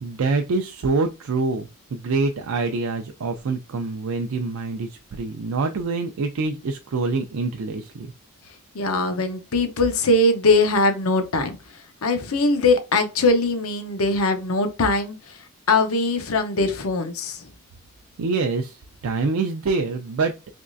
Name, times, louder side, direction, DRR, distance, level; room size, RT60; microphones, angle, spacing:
voice 1, 0.0-8.1 18.2-20.3, right 3 dB, 75° right, 0.4 m, -25 dB
voice 2, 8.7-11.6 12.0-15.4 15.7-17.4, left 2 dB, 85° left, 0.7 m, -21 dB
3.5 x 3.1 x 2.5 m
head